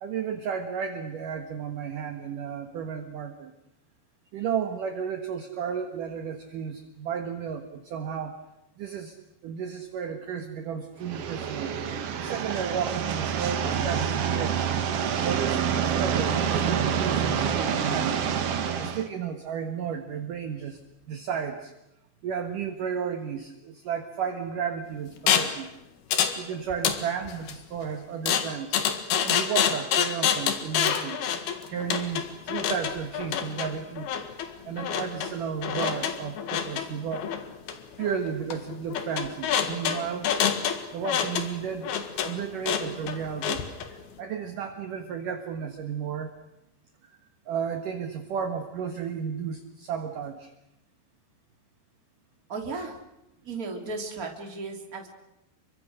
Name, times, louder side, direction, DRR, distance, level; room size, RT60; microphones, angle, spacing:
voice 1, 0.0-3.5 4.3-8.4 8.8-9.2 9.4-11.7 12.2-14.7 15.2-18.2 18.8-20.8 21.1-21.7 22.2-25.7 26.4-28.8 29.2-31.2 31.7-34.1 34.7-37.3 38.0-40.3 40.9-41.9 42.2-43.6 43.9-46.3 47.0-47.1 47.5-50.5, right 7 dB, 60° right, 6 dB, 2.6 m, -33 dB
sound 1, 11.0-19.1, right 7 dB, 85° right, 1.3 m, -27 dB
sound 2, 25.3-25.6 26.1-26.4 26.7-27.5 28.3-43.9, left 8 dB, 65° left, 3.5 m, -27 dB
voice 2, 52.5-53.0 53.4-55.1, right 3 dB, 20° right, 3 dB, 3.2 m, -35 dB
30.0 x 24.0 x 6.5 m, 0.87 s
omnidirectional pair, 5.1 m